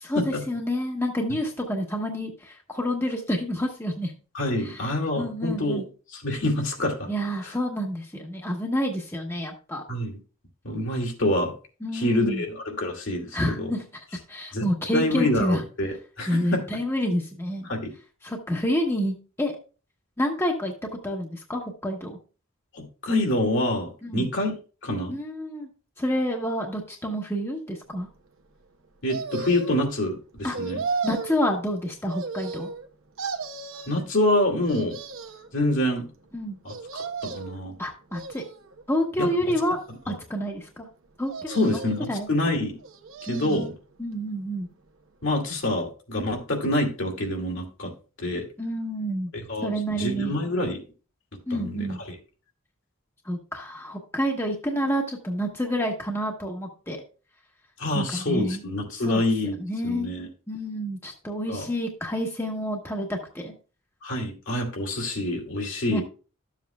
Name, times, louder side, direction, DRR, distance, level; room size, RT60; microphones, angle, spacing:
voice 1, 0.0-4.1 4.6-4.8 5.2-5.8 7.1-9.8 11.8-12.4 13.3-15.6 16.3-17.7 18.2-19.6 20.2-20.7 21.0-22.2 24.0-24.3 25.1-25.7 26.0-28.1 30.4-30.6 31.0-32.7 36.3-36.6 37.8-38.4 38.9-39.8 40.1-40.9 41.2-41.8 42.1-42.3 43.3-43.7 44.0-44.7 48.6-49.3 49.6-50.3 51.5-52.0 53.2-57.0 57.9-58.6 59.0-59.2 59.6-60.1 60.5-63.5 65.9-66.0, equal, 10° left, 1 dB, 1.1 m, -28 dB
voice 2, 4.3-5.8 6.1-7.1 7.4-7.5 9.9-10.2 10.6-11.5 11.9-13.7 14.5-16.6 17.6-17.9 22.7-24.5 24.8-25.1 29.0-30.8 33.9-35.0 35.5-36.1 36.6-37.8 39.2-39.3 41.5-42.8 43.3-43.7 45.2-47.9 48.2-48.4 49.5-50.8 51.5-51.9 57.8-59.5 59.8-60.3 61.5-61.7 64.0-66.0, left 1 dB, 65° left, 1 dB, 2.3 m, -26 dB
sound 1, 29.1-29.9 30.5-31.4 32.1-32.9 33.2-34.0 34.7-35.5 36.7-37.6 38.1-38.8 39.5-40.2 41.3-42.1 42.8-43.7 44.1-44.2, right 4 dB, 70° right, 1.0 m, -35 dB
12.5 x 7.5 x 2.3 m, 0.35 s
head